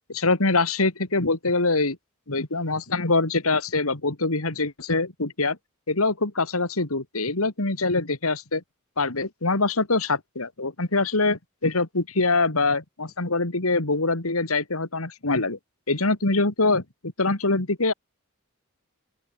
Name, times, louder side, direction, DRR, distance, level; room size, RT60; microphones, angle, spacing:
voice 1, 0.1-2.0 2.3-5.6 5.9-8.6 9.0-15.6 15.9-16.8 17.2-17.9, left 3 dB, 85° left, 2.7 m, -24 dB
open air
head